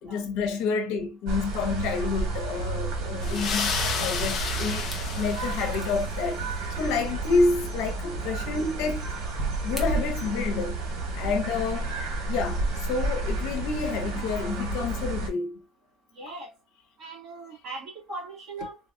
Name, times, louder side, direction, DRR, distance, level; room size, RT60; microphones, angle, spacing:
voice 1, 0.0-4.9 5.1-9.0 9.6-10.8 11.1-11.9 12.3-15.6 16.3-16.4, left 4 dB, 70° left, 0.8 m, -29 dB
sound 1, 1.3-15.3, right 2 dB, 80° right, 1.4 m, -31 dB
sound 2, 3.2-6.2, left 5 dB, 40° left, 0.7 m, -31 dB
sound 3, 4.9-5.1 5.7-6.2 7.7-7.8 9.8-10.0, equal, 10° right, 0.7 m, -43 dB
voice 2, 16.1-16.5 17.0-18.8, right 2 dB, 40° right, 1.9 m, -39 dB
3.9 x 2.4 x 2.6 m
cardioid pair, 155°, 0 cm